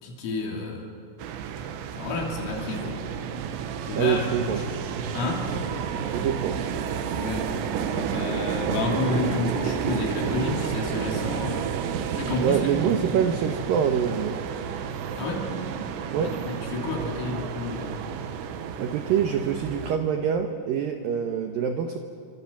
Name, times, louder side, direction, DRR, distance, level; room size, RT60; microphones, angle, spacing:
voice 1, 0.0-0.9 1.9-3.0 3.9-4.7 5.1-5.5 7.2-7.5 7.9-11.7 12.1-12.6 15.1-15.5 16.2-18.0, left 3 dB, 80° left, 0 dB, 5.7 m, -30 dB
sound 1, 1.2-20.0, right 7 dB, 70° right, 3.3 m, -31 dB
voice 2, 3.9-4.6 6.1-6.6 12.4-14.4 16.1-16.4 18.8-22.0, right 8 dB, 85° right, 5 dB, 2.0 m, -25 dB
28.0 x 26.0 x 7.3 m, 2.4 s
omnidirectional pair, 5.8 m